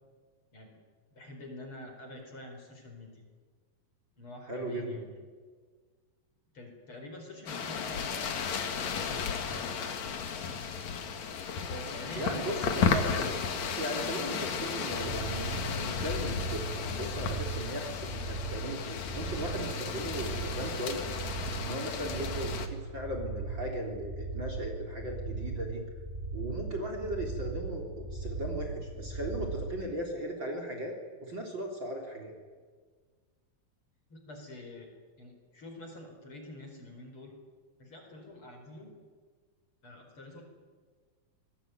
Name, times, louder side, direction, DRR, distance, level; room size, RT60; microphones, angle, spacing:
voice 1, 1.1-3.3 4.2-5.2 6.5-10.1 11.7-13.0 34.1-34.9 35.2-37.3 37.8-38.9 39.8-40.4, left 1 dB, 35° left, 3 dB, 5.2 m, -47 dB
voice 2, 4.5-4.9 12.2-13.3 13.6-21.2 21.6-25.8 26.3-30.9 31.2-32.3, right 1 dB, 30° right, 2 dB, 4.1 m, -37 dB
sound 1, 7.5-22.7, left 6 dB, 55° left, 2.9 m, -34 dB
sound 2, 15.0-29.7, right 3 dB, 15° right, 6.8 m, -38 dB
26.5 x 21.0 x 9.4 m, 1.5 s
omnidirectional pair, 4.2 m